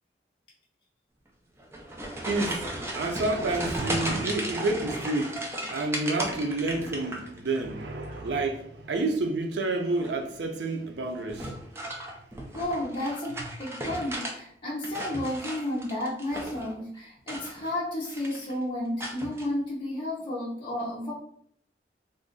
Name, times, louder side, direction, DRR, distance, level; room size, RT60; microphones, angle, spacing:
sound 1, 1.6-7.6 7.9-8.5 9.9-10.3 11.3-14.4 14.7-16.7 17.2-17.8 18.0-18.5 19.0-19.5, right 1 dB, 15° right, 0.5 m, -35 dB
voice 1, 2.3-5.4 5.7-12.0, right 2 dB, 85° right, 0.5 m, -29 dB
voice 2, 12.5-21.1, left 1 dB, 30° left, 0.6 m, -32 dB
2.5 x 2.4 x 3.7 m
head